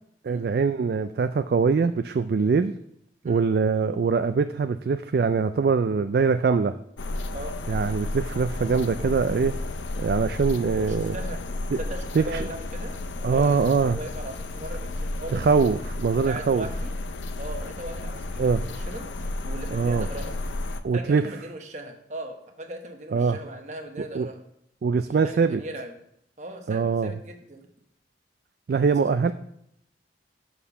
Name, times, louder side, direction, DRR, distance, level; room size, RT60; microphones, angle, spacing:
voice 1, 0.2-2.7 3.2-6.7 7.7-9.5 10.0-11.2 11.7-11.8 12.1-12.5 13.2-14.0 15.3-16.6 18.4-18.6 19.7-20.1 20.8-21.2 23.1-23.4 24.0-24.3 24.8-25.6 26.7-27.1 28.7-29.3, right 5 dB, 55° right, 9 dB, 0.3 m, -23 dB
sound 1, 7.0-20.8, left 2 dB, 90° left, 0.6 m, -32 dB
voice 2, 10.9-11.4 11.8-13.0 13.3-15.5 16.2-16.9 17.4-19.1 19.4-20.4 20.9-24.4 25.2-26.0 26.4-27.6 29.0-29.1, right 1 dB, 40° right, 4 dB, 1.0 m, -38 dB
6.5 x 5.6 x 6.8 m, 0.76 s
head